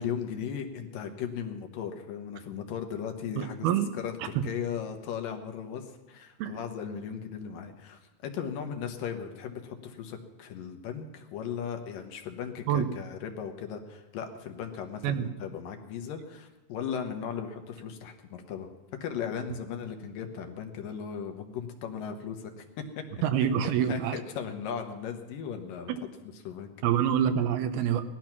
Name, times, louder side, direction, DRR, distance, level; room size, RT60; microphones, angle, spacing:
voice 1, 0.0-3.7 3.9-18.7 19.0-23.0 23.4-25.9 26.2-26.7, left 7 dB, 70° left, 5 dB, 2.6 m, -37 dB
voice 2, 3.4-3.9 6.4-6.6 12.7-12.9 15.0-15.3 23.2-24.2 26.8-28.0, right 9 dB, 80° right, 9 dB, 2.9 m, -26 dB
18.5 x 12.5 x 6.0 m, 1.2 s
omnidirectional pair, 4.4 m